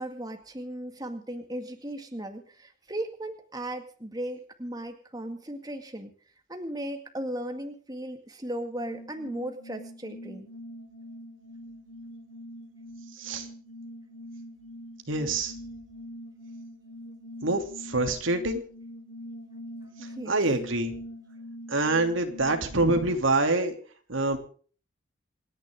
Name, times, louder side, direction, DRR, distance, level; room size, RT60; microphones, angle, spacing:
voice 1, 0.0-6.1 6.5-10.5 20.0-20.4, right 1 dB, 20° right, 5 dB, 2.1 m, -36 dB
sound 1, 8.8-23.3, equal, 75° left, 6.1 m, -44 dB
voice 2, 15.1-15.5 17.4-18.6 20.3-20.9 21.7-23.7 24.1-24.4, right 2 dB, 90° right, 6 dB, 2.9 m, -25 dB
27.5 x 10.5 x 3.7 m, 0.42 s
head